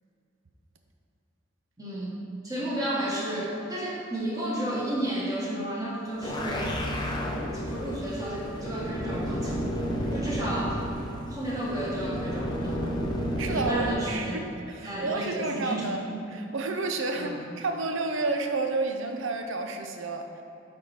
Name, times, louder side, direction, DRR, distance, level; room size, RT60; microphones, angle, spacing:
voice 1, 1.8-2.2 2.4-6.7 7.5-9.6 10.1-10.8 11.3-13.0 13.4-14.4 14.8-16.1 17.1-17.3, right 1 dB, 20° right, -6 dB, 1.4 m, -32 dB
sound 1, 6.1-13.9, equal, 20° left, 0.7 m, -31 dB
voice 2, 13.4-16.0 16.3-20.3, right 3 dB, 75° right, 5 dB, 0.7 m, -30 dB
8.6 x 4.6 x 4.3 m, 2.8 s
head